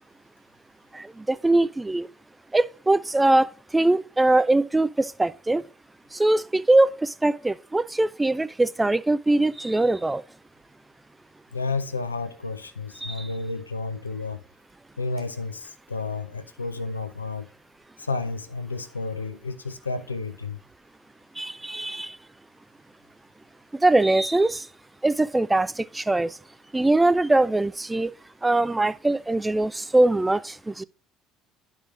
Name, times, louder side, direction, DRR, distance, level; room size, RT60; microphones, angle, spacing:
voice 1, 0.9-2.1 2.5-5.6 6.1-10.2 13.0-13.3 21.4-22.2 23.7-24.7 25.0-26.4 26.7-28.1 28.4-30.8, right 2 dB, 15° right, 0.3 m, -22 dB
voice 2, 11.5-14.4 15.0-17.5 18.0-20.6, left 3 dB, 90° left, 0.5 m, -31 dB
11.0 x 4.9 x 2.4 m
figure-of-eight pair, 60°, 0 cm